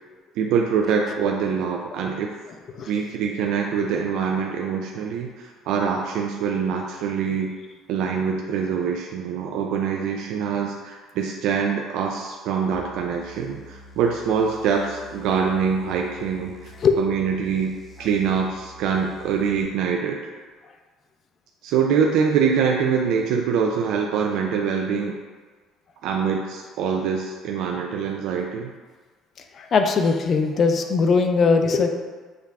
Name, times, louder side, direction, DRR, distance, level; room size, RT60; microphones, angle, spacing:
voice 1, 0.4-2.3 2.9-7.5 7.9-20.2 21.6-25.2 26.0-28.7, right 6 dB, 70° right, 1 dB, 0.3 m, -24 dB
sound 1, 12.7-19.6, right 1 dB, 15° right, 0.7 m, -47 dB
voice 2, 29.5-31.9, left 4 dB, 35° left, 5 dB, 0.4 m, -20 dB
6.4 x 2.4 x 3.4 m, 1.4 s
cardioid pair, 155°, 0 cm